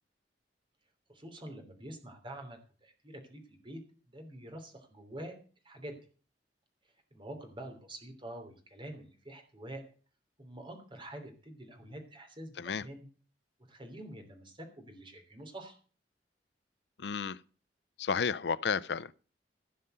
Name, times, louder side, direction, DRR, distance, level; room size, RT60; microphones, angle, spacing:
voice 1, 1.1-3.8 4.1-5.3 5.6-6.0 7.1-9.8 10.4-13.1 13.7-15.8, right 1 dB, 30° right, 3.2 m, -46 dB
voice 2, 17.0-17.4 18.0-19.1, left 6 dB, 70° left, 0.5 m, -32 dB
16.0 x 5.6 x 7.8 m
head